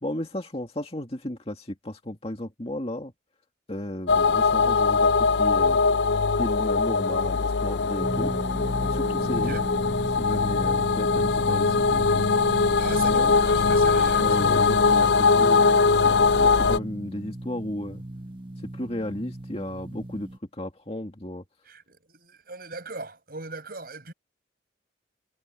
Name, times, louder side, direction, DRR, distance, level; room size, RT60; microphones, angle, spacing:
voice 1, 0.0-3.1 3.7-5.8 6.4-8.3 8.8-9.6 10.1-12.3 13.0-13.4 14.2-15.6 16.0-18.0 18.7-21.4, left 1 dB, 30° left, 2.2 m, -34 dB
sound 1, 4.1-16.8, left 4 dB, 65° left, 0.5 m, -21 dB
sound 2, 8.0-20.4, right 1 dB, 25° right, 1.3 m, -36 dB
voice 2, 9.3-9.6 12.8-14.6 21.7-24.1, right 3 dB, 50° right, 6.6 m, -38 dB
head